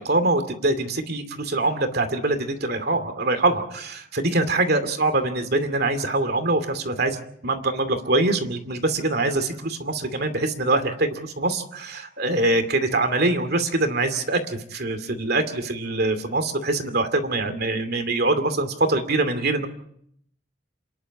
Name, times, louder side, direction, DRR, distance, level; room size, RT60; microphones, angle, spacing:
voice 1, 0.0-7.2 7.4-19.7, right 2 dB, 55° right, 8 dB, 2.5 m, -24 dB
28.0 x 11.0 x 9.8 m, 0.69 s
head